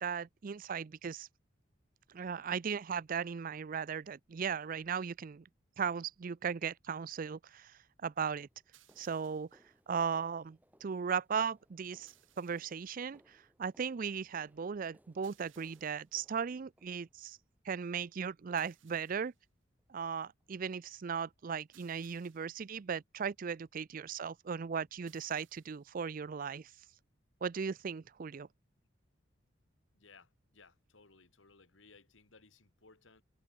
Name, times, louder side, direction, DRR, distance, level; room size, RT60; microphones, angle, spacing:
voice 1, 0.0-1.3 2.1-5.4 5.8-8.5 9.0-9.5 9.9-17.4 17.6-19.3 19.9-26.7 27.4-28.5, right 6 dB, 45° right, 0.4 m, -37 dB
sound 1, 7.6-7.7 8.3-17.5 18.0-18.3 18.6-18.8 19.2-19.4 19.8-19.9 20.4-20.5, equal, 10° right, 5.6 m, -70 dB
sound 2, 8.7-9.7 12.1-12.9 15.2-16.2 18.6-19.4 21.7-22.7 25.1-25.9, right 13 dB, 85° right, 2.6 m, -66 dB
voice 2, 29.9-33.2, left 4 dB, 80° left, 2.2 m, -61 dB
head